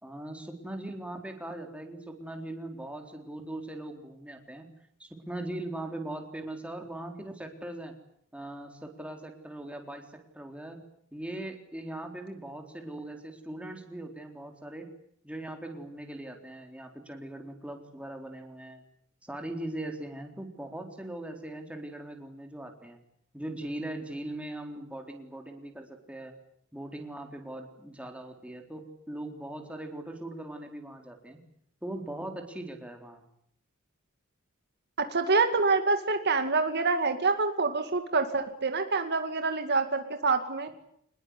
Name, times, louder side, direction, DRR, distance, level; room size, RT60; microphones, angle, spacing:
voice 1, 0.0-4.7 5.0-8.0 8.3-10.8 11.1-14.9 15.2-18.8 19.2-23.0 23.3-26.3 26.7-31.4 31.8-33.3, right 1 dB, 5° right, 4 dB, 3.9 m, -40 dB
voice 2, 35.0-40.7, right 4 dB, 55° right, 7 dB, 2.3 m, -26 dB
26.0 x 21.0 x 9.9 m, 0.70 s
head